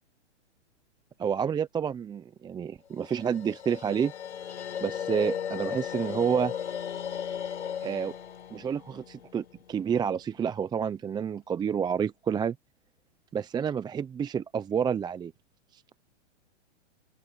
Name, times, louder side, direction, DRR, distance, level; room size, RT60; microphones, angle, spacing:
voice 1, 1.2-4.1 4.8-6.5 7.8-8.1 8.5-12.6 13.3-15.3 15.7-15.8, right 7 dB, 10° right, 0.8 m, -29 dB
sound 1, 3.0-10.1, left 9 dB, 70° left, 4.3 m, -36 dB
open air
hypercardioid pair, 125°, 35 cm